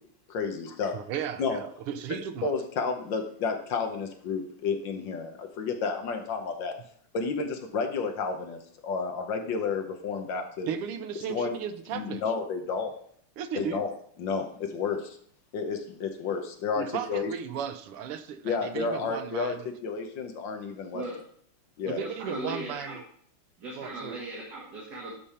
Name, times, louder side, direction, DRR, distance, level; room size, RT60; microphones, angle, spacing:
voice 1, 0.3-0.9 1.4-1.6 2.4-6.7 7.1-10.7 11.3-11.6 11.9-12.9 13.5-13.9 14.2-15.2 15.5-16.8 17.1-17.3 18.4-19.5 19.8-21.0 21.8-22.0, left 5 dB, 65° left, 5 dB, 1.6 m, -31 dB
voice 2, 0.9-2.5 10.7-12.2 13.4-13.9 16.8-19.7 21.9-23.0 23.7-24.2, right 8 dB, 85° right, 9 dB, 1.8 m, -35 dB
voice 3, 21.8-23.0 23.6-25.1, right 1 dB, 50° right, -3 dB, 2.0 m, -38 dB
11.5 x 5.4 x 4.3 m, 0.62 s
omnidirectional pair, 2.4 m